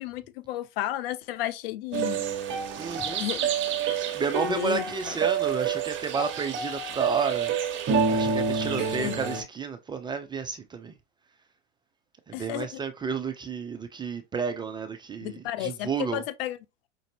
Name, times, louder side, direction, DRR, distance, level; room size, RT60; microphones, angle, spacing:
voice 1, 0.0-2.2 3.2-3.4 4.4-5.1 8.8-9.2 12.3-12.8 15.2-16.6, left 14 dB, 55° left, 0.5 m, -33 dB
sound 1, 1.9-9.4, right 6 dB, 35° right, 1.1 m, -28 dB
voice 2, 2.8-3.3 4.1-11.0 12.3-16.2, right 5 dB, 15° right, 0.4 m, -32 dB
5.2 x 2.5 x 2.9 m
hypercardioid pair, 100°, 35 cm